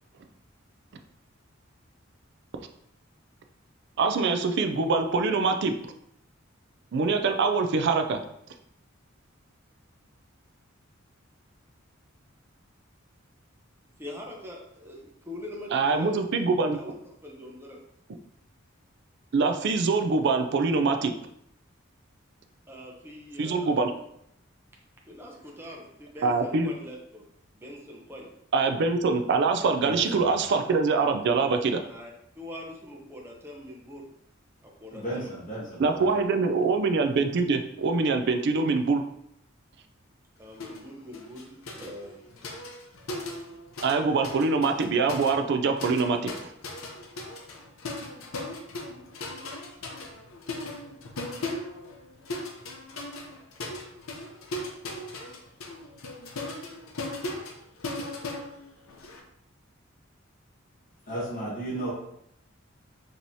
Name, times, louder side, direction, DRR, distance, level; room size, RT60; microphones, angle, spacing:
voice 1, 4.0-5.7 6.9-8.2 15.7-16.8 19.3-21.1 23.4-23.9 26.2-26.7 28.5-31.8 35.8-39.0 43.8-46.5, right 4 dB, 55° right, 6 dB, 0.4 m, -24 dB
voice 2, 14.0-16.2 16.8-17.8 22.7-23.8 25.1-27.2 27.5-28.3 31.9-32.1 32.3-34.1 34.6-35.3 40.4-42.6 44.1-44.2, left 1 dB, 10° right, -2 dB, 0.6 m, -43 dB
voice 3, 29.8-30.4 34.9-36.1 61.1-61.9, right 1 dB, 40° left, -8 dB, 1.2 m, -34 dB
sound 1, 40.6-40.8 41.1-44.0 44.2-59.2, left 2 dB, 80° left, 0.6 m, -38 dB
4.6 x 2.8 x 2.7 m, 0.75 s
head